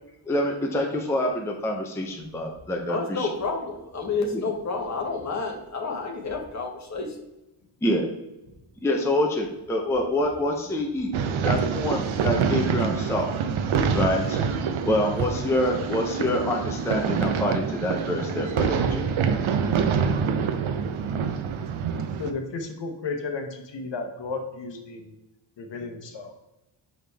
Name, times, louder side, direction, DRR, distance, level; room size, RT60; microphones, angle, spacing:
voice 1, 0.3-3.3 4.3-4.5 7.8-8.1 8.8-11.1 11.4-13.3 13.9-14.4 14.8-19.0, left 1 dB, 5° left, 0 dB, 0.6 m, -26 dB
voice 2, 2.9-7.2, left 4 dB, 35° left, 0 dB, 1.2 m, -30 dB
sound 1, 11.1-22.3, right 6 dB, 75° right, 0.7 m, -26 dB
voice 3, 22.2-25.1 25.6-26.3, left 4 dB, 65° left, 4 dB, 1.0 m, -33 dB
5.8 x 5.1 x 3.4 m, 0.97 s
wide cardioid pair, 180°, 48 cm